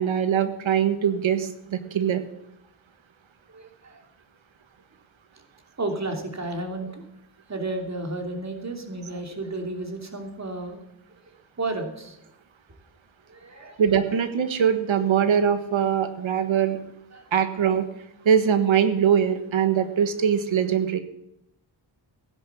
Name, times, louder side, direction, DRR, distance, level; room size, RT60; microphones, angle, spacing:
voice 1, 0.0-2.2 13.8-16.8 17.3-17.9 18.2-21.0, right 8 dB, 85° right, 9 dB, 1.5 m, -22 dB
voice 2, 3.5-4.0 5.8-7.1 7.5-10.8 11.6-12.2 13.3-13.8 17.1-17.2, right 2 dB, 35° right, 4 dB, 2.9 m, -32 dB
15.5 x 11.0 x 7.0 m, 0.82 s
wide cardioid pair, 100°, 46 cm